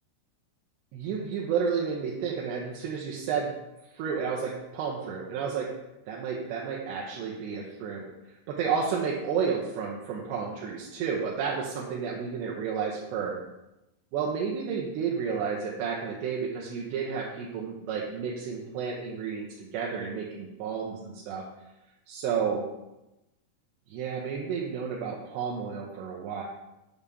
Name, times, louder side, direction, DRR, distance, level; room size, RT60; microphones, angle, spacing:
voice 1, 0.9-3.5 3.9-5.7 6.1-13.4 14.1-21.4 22.1-22.7 23.9-26.4, right 6 dB, 80° right, -3 dB, 3.0 m, -31 dB
8.7 x 3.6 x 6.8 m, 0.94 s
omnidirectional pair, 4.8 m